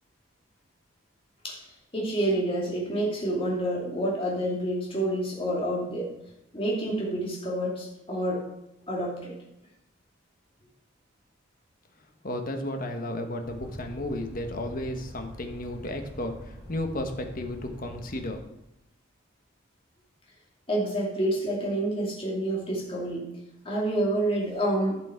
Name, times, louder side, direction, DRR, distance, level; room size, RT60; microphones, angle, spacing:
voice 1, 1.9-6.1 6.5-8.5 8.8-9.3 20.7-23.3 23.6-25.0, right 1 dB, 30° left, -3 dB, 2.5 m, -28 dB
voice 2, 12.2-18.4, left 1 dB, 45° left, 5 dB, 1.2 m, -33 dB
sound 1, 13.4-18.4, equal, 15° right, 2.9 m, -44 dB
11.5 x 6.1 x 4.5 m, 0.88 s
head